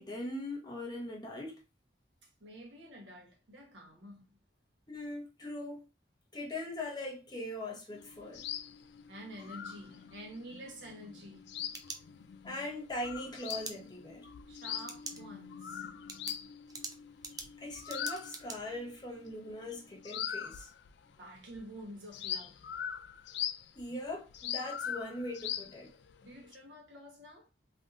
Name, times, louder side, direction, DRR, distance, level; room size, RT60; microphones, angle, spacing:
voice 1, 0.0-1.6 4.9-5.8 6.3-8.4 12.4-14.3 17.6-20.7 23.7-25.9, left 1 dB, 25° left, 0.9 m, -40 dB
voice 2, 2.2-4.4 9.1-11.5 14.5-15.9 21.1-22.7 26.2-27.5, equal, 90° right, 1.1 m, -49 dB
Evening urbanscape with birdcalls in Bengaluru, 7.9-21.1 21.4-26.6, left 9 dB, 70° left, 0.3 m, -42 dB
sound 1, 11.3-12.5 13.5-13.7 14.8-15.2 15.6-15.7 16.1-18.6, right 4 dB, 20° right, 0.4 m, -44 dB
3.4 x 2.6 x 2.5 m
head